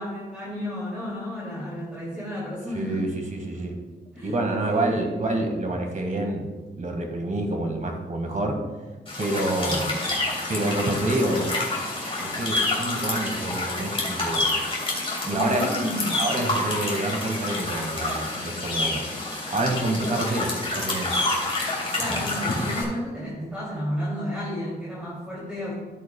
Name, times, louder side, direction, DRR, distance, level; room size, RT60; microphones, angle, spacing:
voice 1, 0.0-3.0 4.1-4.3 4.7-5.1 9.5-9.8 15.2-16.2 22.0-25.7, equal, 5° right, -7 dB, 2.7 m, -32 dB
voice 2, 2.7-3.8 4.2-6.5 6.8-8.6 9.2-10.0 10.5-11.5 12.2-14.5 15.3-15.7 16.2-19.1 19.5-21.2, right 2 dB, 45° right, 3 dB, 1.7 m, -27 dB
sound 1, 9.1-22.8, left 2 dB, 30° left, 3.1 m, -28 dB
14.5 x 8.4 x 2.2 m, 1.3 s
wide cardioid pair, 110°, 19 cm